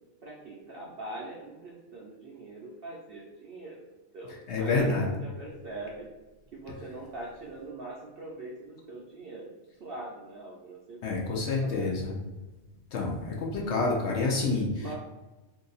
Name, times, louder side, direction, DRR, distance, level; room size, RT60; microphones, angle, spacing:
voice 1, 0.2-3.8 4.1-4.9 5.2-6.1 6.5-9.5 9.8-11.9 14.8-14.9, right 2 dB, 60° right, -3 dB, 0.6 m, -43 dB
voice 2, 4.5-5.2 11.0-12.2 12.9-14.9, left 3 dB, 60° left, -1 dB, 0.8 m, -28 dB
2.7 x 2.5 x 3.9 m, 1.2 s
omnidirectional pair, 1.5 m